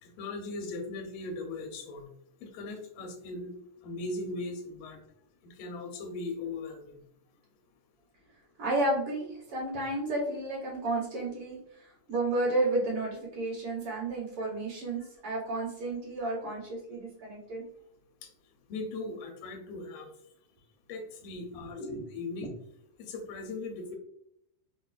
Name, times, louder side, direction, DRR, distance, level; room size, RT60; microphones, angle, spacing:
voice 1, 0.0-2.1 2.4-3.6 3.8-5.0 5.4-7.0 18.2-18.3 18.7-20.1 20.9-22.5 23.0-24.0, left 3 dB, 85° left, 3 dB, 2.3 m, -39 dB
voice 2, 8.6-17.6 21.8-22.0 22.4-22.5, right 2 dB, 55° right, -7 dB, 1.8 m, -32 dB
5.3 x 2.1 x 2.3 m, 0.73 s
omnidirectional pair, 3.9 m